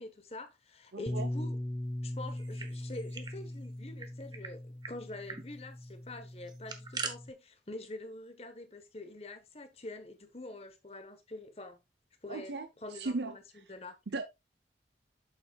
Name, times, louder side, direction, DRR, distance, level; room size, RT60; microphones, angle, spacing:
voice 1, 0.0-1.6 2.0-11.8 12.2-13.4 13.7-13.9, left 2 dB, 35° left, 1.3 m, -46 dB
voice 2, 0.9-1.3 12.3-12.7 12.9-13.3 14.1-14.2, right 3 dB, 75° right, 0.8 m, -36 dB
Bass guitar, 1.1-7.3, left 1 dB, 10° left, 0.3 m, -40 dB
sound 1, 2.3-3.4 3.6-3.7 4.0-4.5 4.8-5.0 5.3-5.5 6.4-7.1, right 5 dB, 25° right, 1.0 m, -41 dB
8.7 x 7.1 x 2.4 m
head